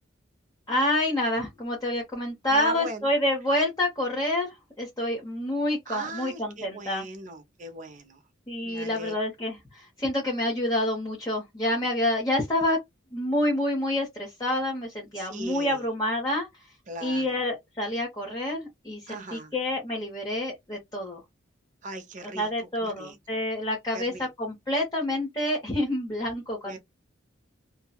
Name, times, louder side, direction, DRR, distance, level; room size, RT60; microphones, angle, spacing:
voice 1, 0.7-7.1 8.5-12.8 13.1-16.5 17.0-21.2 22.3-26.8, left 1 dB, 20° left, 0.9 m, -28 dB
voice 2, 2.5-3.1 5.9-8.2 8.6-9.1 15.2-15.8 16.9-17.4 19.1-19.5 21.8-23.4 23.9-24.3 26.6-26.8, right 1 dB, 40° right, 0.7 m, -38 dB
2.7 x 2.2 x 2.2 m
head